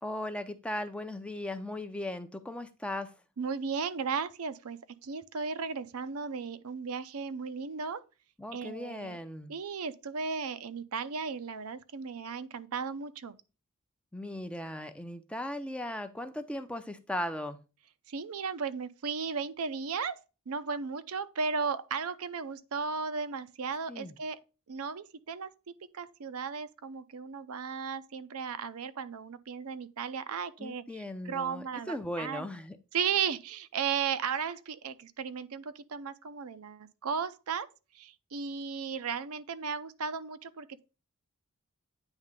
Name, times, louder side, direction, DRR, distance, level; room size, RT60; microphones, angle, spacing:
voice 1, 0.0-3.1 8.4-9.5 14.1-17.6 23.9-24.1 30.6-32.8, left 1 dB, 5° left, 0.5 m, -37 dB
voice 2, 3.4-8.0 8.5-9.2 9.5-13.4 18.1-24.4 24.7-25.5 25.9-32.5 32.9-37.7 37.9-40.8, right 6 dB, 75° right, 0.6 m, -35 dB
9.0 x 3.2 x 5.2 m
head